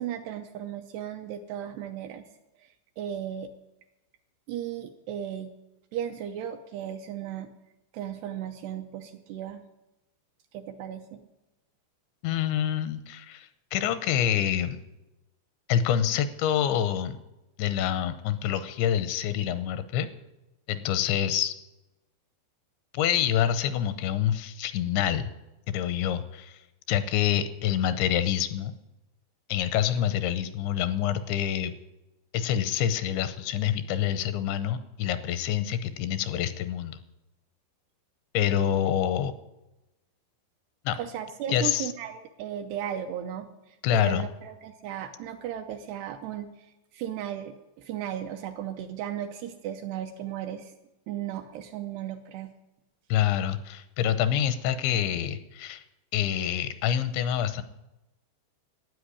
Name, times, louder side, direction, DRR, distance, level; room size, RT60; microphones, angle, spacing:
voice 1, 0.0-2.2 2.6-3.5 4.5-5.5 5.9-7.5 7.9-9.6 10.5-11.2 41.0-50.7 51.1-52.5, right 10 dB, 80° right, 6 dB, 2.5 m, -36 dB
voice 2, 12.2-14.8 15.7-17.2 17.6-20.1 20.7-21.5 22.9-25.3 25.7-26.6 26.9-28.7 29.5-31.7 32.3-37.0 38.3-39.3 40.9-41.0 41.5-41.9 43.8-44.2 53.1-55.8 56.1-57.6, left 10 dB, 80° left, 12 dB, 3.0 m, -26 dB
13.0 x 9.0 x 10.0 m, 0.97 s
omnidirectional pair, 5.4 m